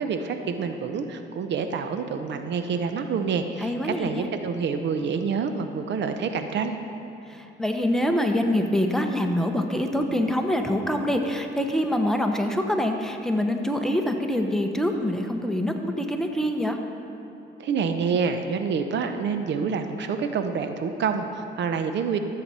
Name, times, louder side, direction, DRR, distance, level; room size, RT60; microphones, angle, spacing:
voice 1, 0.0-6.8 17.6-22.2, right 5 dB, 65° right, 7 dB, 0.7 m, -27 dB
voice 2, 3.6-4.3 7.3-16.8, left 1 dB, ahead, 3 dB, 1.0 m, -25 dB
14.0 x 7.7 x 4.2 m, 3.0 s
cardioid pair, 90°, 20 cm